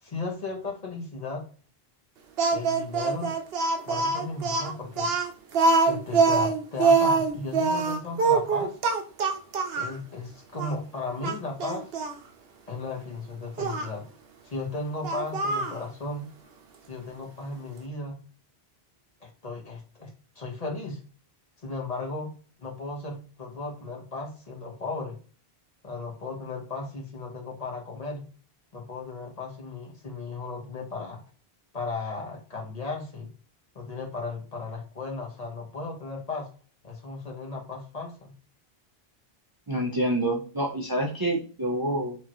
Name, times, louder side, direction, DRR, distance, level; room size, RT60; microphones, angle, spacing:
voice 1, 0.0-1.5 2.5-3.3 3.9-5.1 5.9-8.8 9.7-11.9 12.7-14.0 14.4-16.3 16.9-18.2 19.2-21.0 21.6-22.3 22.6-25.2 25.8-28.3 28.7-31.2 31.7-33.3 33.7-36.5 36.8-38.3, left 3 dB, 40° left, -1 dB, 1.1 m, -35 dB
Speech, 2.4-10.0 10.6-10.7 11.2-12.2 13.6-13.9 15.0-15.8, right 4 dB, 75° right, 0.9 m, -24 dB
voice 2, 39.7-42.2, right 1 dB, 30° right, -1 dB, 0.5 m, -27 dB
4.6 x 2.9 x 3.0 m, 0.38 s
omnidirectional pair, 1.0 m